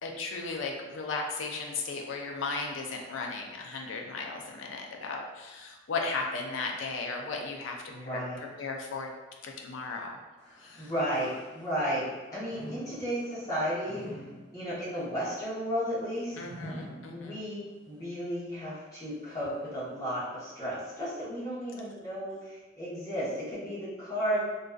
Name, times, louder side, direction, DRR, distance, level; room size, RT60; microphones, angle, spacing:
voice 1, 0.0-7.8 8.0-9.1 9.4-10.1 10.6-10.9 16.4-17.4, left 3 dB, 80° left, 1 dB, 0.4 m, -36 dB
voice 2, 7.9-8.4 10.8-12.0 12.3-14.0 14.5-16.3 17.1-24.4, equal, 15° left, -11 dB, 0.8 m, -33 dB
sound 1, 10.4-12.0 12.4-17.7 18.2-18.3 19.1-19.2, equal, 10° right, 1.0 m, -47 dB
2.5 x 2.3 x 2.3 m, 1.2 s
head